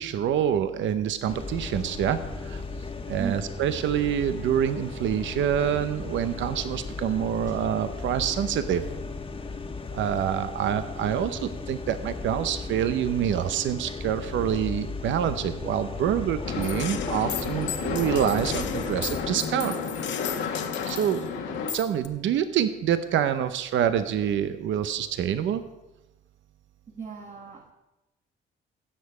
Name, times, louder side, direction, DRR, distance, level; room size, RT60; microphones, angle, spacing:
voice 1, 0.0-2.6 3.1-8.8 9.9-19.8 20.2-20.4 20.9-25.6, right 9 dB, 75° right, 11 dB, 0.7 m, -26 dB
sound 1, 1.3-19.4, left 4 dB, 25° left, 1.2 m, -36 dB
sound 2, 16.4-21.7, left 6 dB, 90° left, 1.6 m, -32 dB
Gunshot gunfire, 16.6-21.2 21.7-22.1, left 10 dB, 70° left, 0.8 m, -37 dB
voice 2, 26.9-27.7, right 6 dB, 40° right, 1 dB, 1.3 m, -36 dB
16.5 x 6.7 x 4.9 m, 1.0 s
cardioid pair, 90°, 20 cm